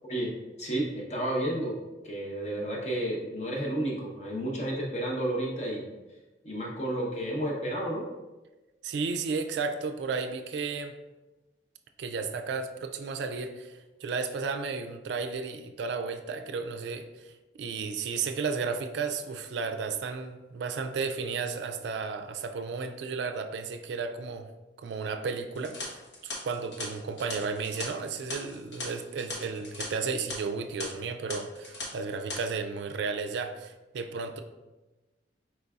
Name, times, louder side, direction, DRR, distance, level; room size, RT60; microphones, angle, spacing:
voice 1, 0.1-1.8 2.0-5.9 6.4-8.0, right 1 dB, 40° left, -3 dB, 0.9 m, -31 dB
voice 2, 8.8-10.9 12.0-17.3 17.6-24.5 24.8-34.4, right 5 dB, 75° right, 7 dB, 0.3 m, -33 dB
sound 1, 25.6-29.9 30.1-30.3 30.8-30.9 31.3-31.9 32.1-32.4, left 2 dB, 75° left, 0.9 m, -39 dB
4.5 x 3.9 x 2.4 m, 1.1 s
head